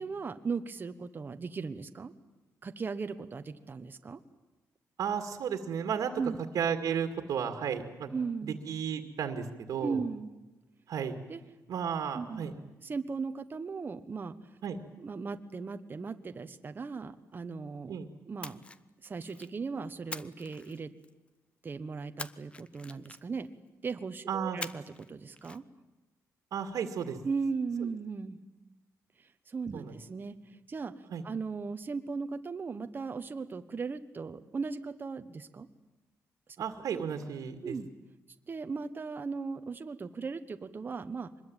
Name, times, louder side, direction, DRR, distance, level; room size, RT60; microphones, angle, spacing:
voice 1, 0.0-2.1 2.6-4.2 6.2-6.4 8.1-8.6 9.8-10.3 11.3-11.4 12.1-12.6 12.8-14.3 15.0-18.0 18.3-18.6 19.0-20.9 21.6-23.5 23.8-25.6 27.2-28.4 29.5-30.9 31.2-35.7 37.6-37.9 38.5-41.3, right 4 dB, 35° right, 8 dB, 1.3 m, -37 dB
voice 2, 5.0-6.1 6.5-8.1 8.5-10.0 10.9-11.2 11.7-12.5 14.6-14.8 17.9-18.1 24.3-24.6 26.5-27.2 29.7-30.0 31.1-31.2 36.6-37.8, right 7 dB, 75° right, 6 dB, 2.2 m, -33 dB
Splash splatter, 18.4-19.6 20.1-21.3 22.2-23.5 24.6-25.1 25.4-25.6, left 2 dB, 20° left, 0.9 m, -44 dB
24.5 x 21.0 x 9.1 m, 1.1 s
cardioid pair, 120°, 6 cm